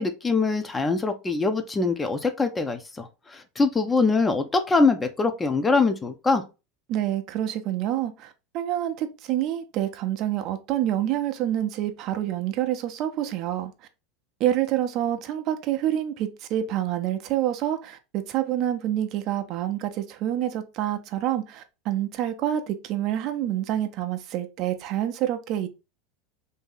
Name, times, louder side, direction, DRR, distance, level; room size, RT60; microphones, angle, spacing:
voice 1, 0.0-6.4, left 3 dB, 20° left, 0.5 m, -23 dB
voice 2, 6.9-13.9 14.4-25.7, right 12 dB, 50° right, 0.5 m, -27 dB
2.7 x 2.7 x 3.7 m
hypercardioid pair, 85°, 0 cm